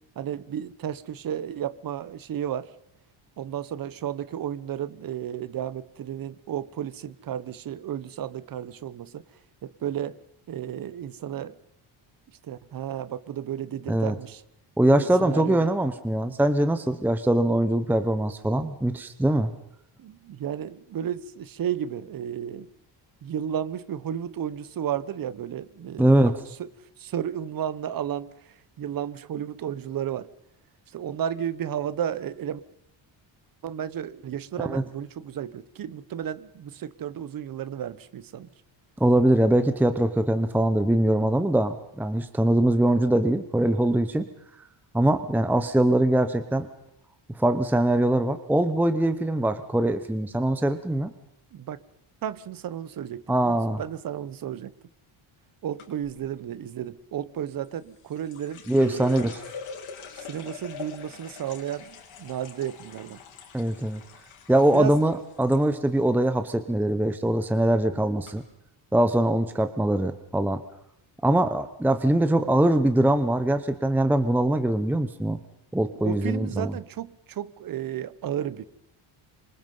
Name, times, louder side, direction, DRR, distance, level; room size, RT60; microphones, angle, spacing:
voice 1, 0.2-2.7 3.4-9.2 9.6-10.2 10.5-11.6 12.4-14.4 14.9-15.7 20.0-22.7 23.2-26.3 26.6-26.7 27.0-30.3 30.9-32.6 33.6-38.5 51.5-51.8 52.2-54.7 55.6-59.4 60.2-63.2 64.7-65.0 76.0-78.7, right 10 dB, 45° right, 1.0 m, -33 dB
voice 2, 14.8-19.5 26.0-26.4 34.6-34.8 39.0-44.3 44.9-46.7 47.4-51.1 53.3-53.8 58.7-59.4 63.5-64.0 64.5-68.4 68.9-70.6 71.2-75.4 75.7-76.7, right 1 dB, 5° right, 0.9 m, -22 dB
sound 1, 55.8-56.2 57.6-65.6 65.9-66.5 66.8-67.2 67.8-67.9 68.2-68.3, left 7 dB, 75° left, 5.5 m, -44 dB
27.0 x 25.0 x 5.5 m
cardioid pair, 165°, 49 cm